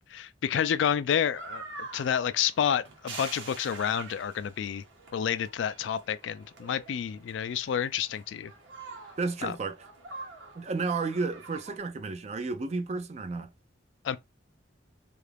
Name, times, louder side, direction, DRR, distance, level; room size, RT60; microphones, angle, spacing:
voice 1, 0.1-4.8 5.1-8.5 9.4-9.5 14.0-14.2, left 8 dB, 75° left, 0.3 m, -29 dB
sound 1, 1.3-11.8, right 3 dB, 80° right, 1.0 m, -46 dB
voice 2, 9.2-9.9 10.5-13.5, right 4 dB, 35° right, 0.4 m, -32 dB
2.8 x 2.4 x 3.3 m
head